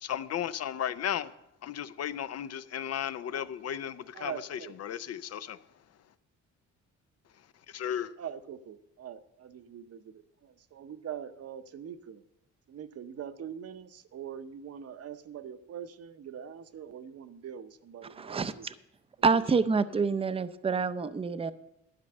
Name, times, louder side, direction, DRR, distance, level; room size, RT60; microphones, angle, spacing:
voice 1, 0.0-1.3 1.6-5.6 7.7-8.1, left 10 dB, 55° left, 0.6 m, -35 dB
voice 2, 4.1-4.8 8.2-12.2 12.7-18.7 19.3-19.4, right 8 dB, 55° right, 0.8 m, -43 dB
voice 3, 18.1-18.7 19.2-21.5, right 4 dB, 20° right, 0.5 m, -27 dB
12.0 x 5.3 x 7.8 m
cardioid pair, 90°, 30 cm